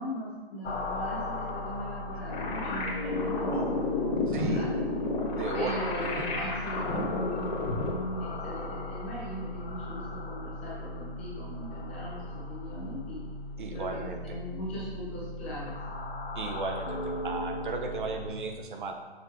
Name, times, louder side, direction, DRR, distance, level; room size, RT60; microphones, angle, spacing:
voice 1, 0.0-4.7 5.5-7.5 7.8-13.3 13.7-15.8, equal, 10° left, -6 dB, 0.5 m, -39 dB
sound 1, 0.6-18.3, left 2 dB, 85° left, 1.4 m, -38 dB
sound 2, 2.3-7.9, left 2 dB, 40° left, 1.4 m, -31 dB
voice 2, 4.3-4.7 5.3-5.7 13.6-14.2 16.3-18.9, right 4 dB, 50° right, 3 dB, 0.9 m, -35 dB
6.6 x 4.4 x 3.6 m, 1.5 s
hypercardioid pair, 155°, 31 cm